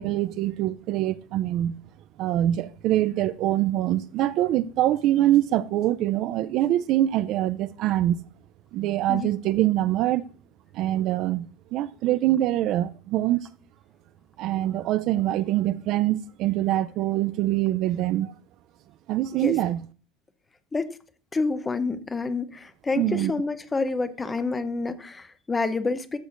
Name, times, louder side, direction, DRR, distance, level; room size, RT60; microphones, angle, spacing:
voice 1, 0.0-1.7 2.2-8.2 8.7-10.3 10.7-13.5 14.4-18.3 19.1-19.9 23.0-23.4, right 13 dB, 50° right, 0.4 m, -24 dB
voice 2, 21.3-22.5 22.9-26.2, left 3 dB, 15° left, 0.7 m, -28 dB
13.5 x 6.2 x 2.5 m
cardioid pair, 145°, 0 cm